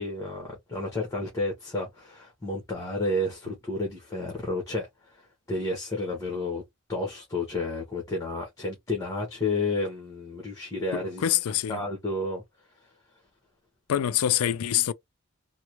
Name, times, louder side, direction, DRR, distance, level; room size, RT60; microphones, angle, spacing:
voice 1, 0.0-4.9 5.5-6.6 6.9-11.2 11.7-12.4, left 2 dB, 15° left, 1.1 m, -31 dB
voice 2, 11.2-11.8 13.9-14.9, left 11 dB, 75° left, 0.3 m, -25 dB
3.4 x 2.1 x 3.0 m
head